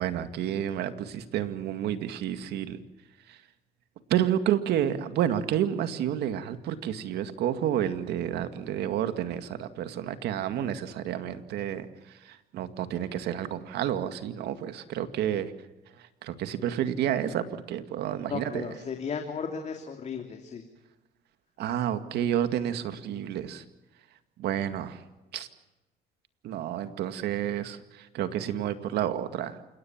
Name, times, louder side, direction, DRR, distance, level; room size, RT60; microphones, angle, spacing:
voice 1, 0.0-2.8 3.3-3.4 4.1-15.5 16.0-18.7 21.6-23.6 24.4-25.0 25.3-25.5 26.4-29.6, right 10 dB, 75° right, 9 dB, 2.1 m, -30 dB
voice 2, 18.3-20.6, left 6 dB, 45° left, 4 dB, 3.0 m, -35 dB
29.0 x 18.0 x 7.3 m, 1.1 s
cardioid pair, 110°, 17 cm